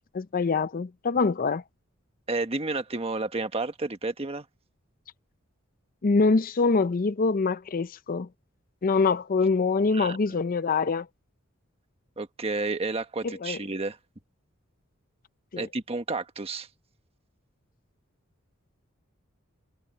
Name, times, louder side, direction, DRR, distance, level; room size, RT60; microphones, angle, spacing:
voice 1, 0.1-1.6 6.0-8.3 8.8-11.1 13.2-13.6 15.5-15.7, left 4 dB, 45° left, 0.5 m, -24 dB
voice 2, 2.3-4.4 9.9-10.2 12.2-14.0 15.6-16.7, right 3 dB, 30° right, 1.4 m, -31 dB
head